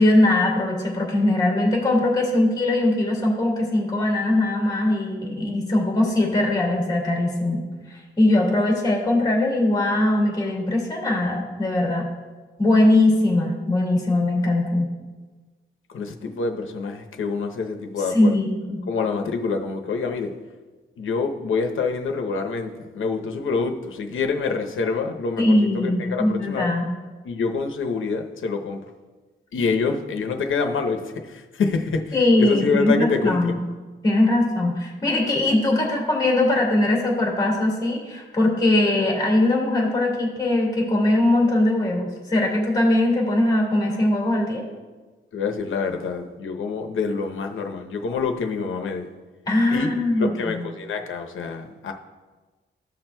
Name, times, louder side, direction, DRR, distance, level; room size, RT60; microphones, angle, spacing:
voice 1, 0.0-7.6 8.2-12.1 12.6-14.9 18.1-18.8 25.4-26.9 32.1-33.6 34.0-44.6 49.5-50.6, left 1 dB, 20° left, -1 dB, 2.3 m, -21 dB
voice 2, 15.9-18.4 18.9-20.3 21.0-26.7 27.2-28.8 29.5-33.6 45.3-49.1 49.7-49.9 50.2-51.9, left 4 dB, 80° left, 4 dB, 0.8 m, -26 dB
15.0 x 5.9 x 2.2 m, 1.3 s
wide cardioid pair, 150°, 20 cm